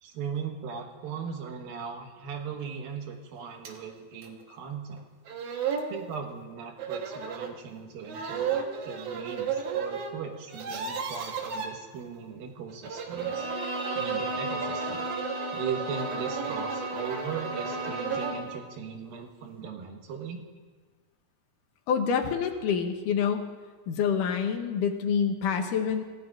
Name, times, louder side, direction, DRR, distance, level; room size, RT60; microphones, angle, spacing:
voice 1, 0.0-5.1 5.9-13.5 13.9-15.1 15.5-20.4, right 6 dB, 90° right, 3 dB, 3.1 m, -38 dB
sound 1, 3.6-3.8 4.2-4.3 5.0-5.1 5.3-5.9 6.8-7.5 8.0-10.1 10.4-11.7 12.7-18.4, right 6 dB, 65° right, 2.4 m, -34 dB
Bowed string instrument, 13.1-18.6, right 1 dB, 20° right, 2.8 m, -35 dB
voice 2, 21.9-23.5 23.9-26.0, left 7 dB, 75° left, 5 dB, 2.3 m, -27 dB
26.5 x 15.0 x 2.5 m, 1.4 s
omnidirectional pair, 4.1 m